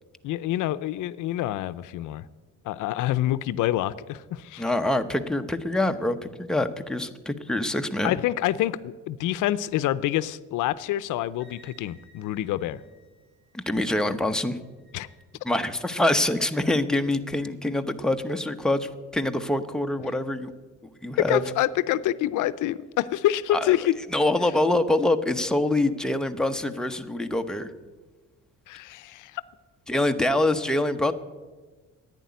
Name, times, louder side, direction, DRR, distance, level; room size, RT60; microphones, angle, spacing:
voice 1, 0.2-2.2 2.6-4.6 8.0-12.8 14.9-15.1 21.2-23.9 28.7-29.4, left 14 dB, 85° left, 16 dB, 0.5 m, -27 dB
voice 2, 4.6-8.1 13.5-14.6 15.4-20.5 21.0-21.4 23.5-23.8 24.1-27.7 29.9-31.1, left 1 dB, ahead, 6 dB, 0.9 m, -25 dB
Wind instrument woodwind instrument, 11.4-15.2, right 1 dB, 65° right, 4.6 m, -59 dB
11.0 x 9.7 x 9.3 m, 1.3 s
cardioid pair, 90°, 30 cm